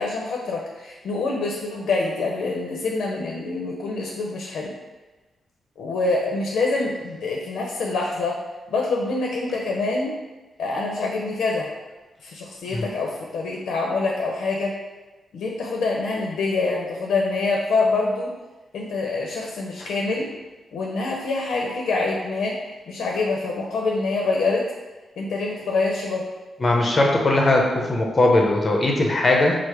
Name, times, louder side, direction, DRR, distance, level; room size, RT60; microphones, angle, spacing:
voice 1, 0.0-4.7 5.8-8.4 8.7-10.2 10.6-11.7 12.2-14.7 15.3-18.3 18.7-20.3 20.7-22.6 22.9-24.7 25.2-26.3, left 3 dB, 85° left, -1 dB, 0.6 m, -25 dB
voice 2, 26.6-29.6, left 2 dB, 30° left, 0 dB, 0.7 m, -19 dB
4.6 x 2.0 x 4.6 m, 1.2 s
cardioid pair, 120°, 0 cm